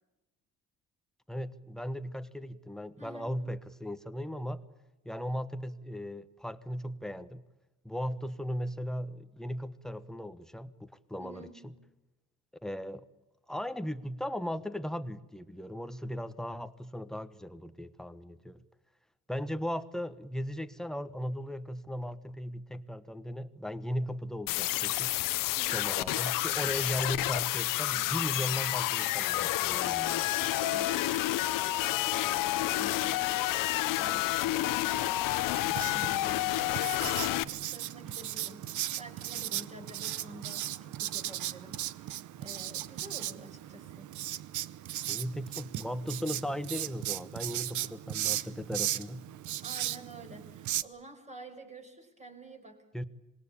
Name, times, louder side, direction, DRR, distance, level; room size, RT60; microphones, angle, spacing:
voice 1, 1.3-4.6 5.0-7.4 7.8-11.7 12.6-13.1 13.5-18.6 19.3-25.2 25.7-30.3 45.1-49.3 52.9-53.0, equal, ahead, 11 dB, 1.2 m, -37 dB
voice 2, 3.0-3.4 11.2-11.7 25.5-25.9 29.8-44.1 47.8-47.9 49.6-52.8, right 1 dB, 20° right, 4 dB, 5.5 m, -50 dB
sound 1, 24.5-37.4, left 16 dB, 90° left, 1.0 m, -29 dB
Writing, 35.6-50.8, right 13 dB, 65° right, 0.9 m, -37 dB
26.0 x 20.5 x 8.6 m, 0.99 s
cardioid pair, 130°, 32 cm